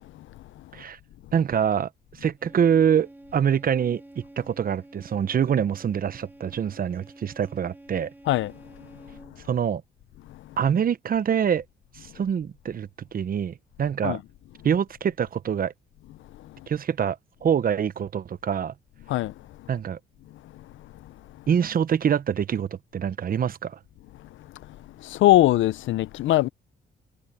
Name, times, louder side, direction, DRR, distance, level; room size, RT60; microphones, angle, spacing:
voice 1, 1.3-1.9 2.2-4.0 4.4-8.1 9.5-9.8 10.6-11.6 11.9-14.2 14.6-15.7 16.7-18.7 19.7-20.0 21.5-23.8, right 8 dB, 45° right, 0.9 m, -25 dB
sound 1, 2.4-9.5, right 1 dB, 10° right, 4.3 m, -49 dB
voice 2, 25.2-26.5, left 15 dB, 75° left, 0.6 m, -20 dB
cardioid pair, 90°, 20 cm